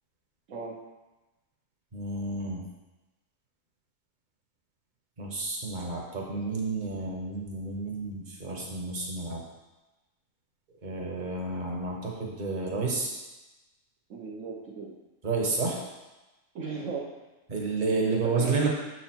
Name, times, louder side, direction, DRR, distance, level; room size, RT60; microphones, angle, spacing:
voice 1, 1.9-2.6 5.2-9.4 10.8-13.1 15.2-15.8 17.5-18.7, right 3 dB, 35° right, -1 dB, 1.2 m, -30 dB
voice 2, 14.1-14.9 16.5-17.0 18.0-18.7, right 4 dB, 65° right, -4 dB, 1.2 m, -36 dB
6.8 x 4.6 x 4.4 m, 1.1 s
omnidirectional pair, 1.5 m